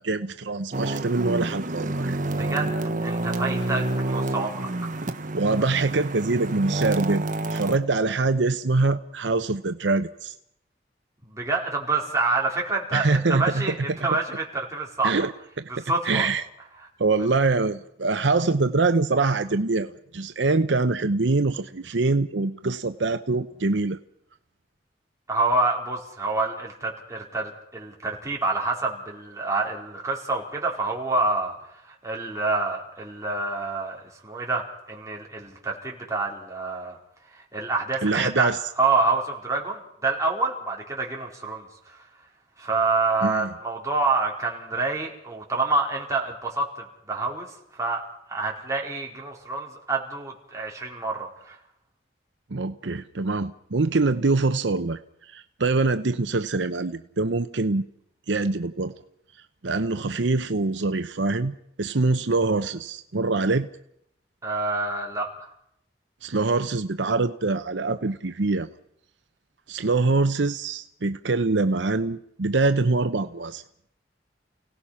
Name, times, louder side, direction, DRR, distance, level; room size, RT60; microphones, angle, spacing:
voice 1, 0.0-2.2 5.3-7.2 7.5-10.3 12.9-14.1 15.0-15.3 15.6-16.4 17.0-24.0 38.0-38.6 43.2-43.5 52.5-55.0 55.3-57.8 58.3-58.9 59.6-63.7 66.2-68.7 69.7-73.6, right 3 dB, 75° right, 9 dB, 0.8 m, -24 dB
sound 1, 0.7-7.8, right 2 dB, 45° right, 1.3 m, -28 dB
voice 2, 3.0-4.7 11.3-15.3 15.7-16.3 17.2-17.3 25.3-31.6 32.0-37.0 37.5-38.5 38.8-42.0 42.6-47.5 47.8-48.0 48.3-51.6 64.4-65.3, right 3 dB, 15° right, -2 dB, 4.4 m, -27 dB
29.5 x 18.0 x 5.8 m, 0.74 s
head